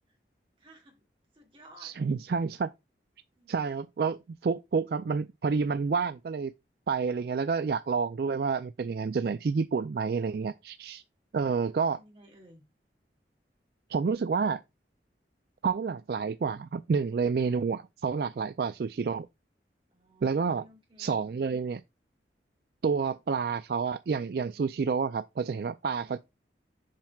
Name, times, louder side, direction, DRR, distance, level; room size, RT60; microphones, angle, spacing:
voice 1, 0.6-1.0 1.3-1.9 3.3-3.8 11.8-12.6 19.9-21.3 26.0-26.2, equal, 30° right, 2.6 m, -56 dB
voice 2, 1.8-2.7 3.5-6.5 6.9-11.0 11.3-12.0 13.9-14.6 15.6-19.3 20.2-20.7 21.0-21.8 22.8-26.2, right 5 dB, 60° right, 0.3 m, -29 dB
7.4 x 5.9 x 2.3 m
head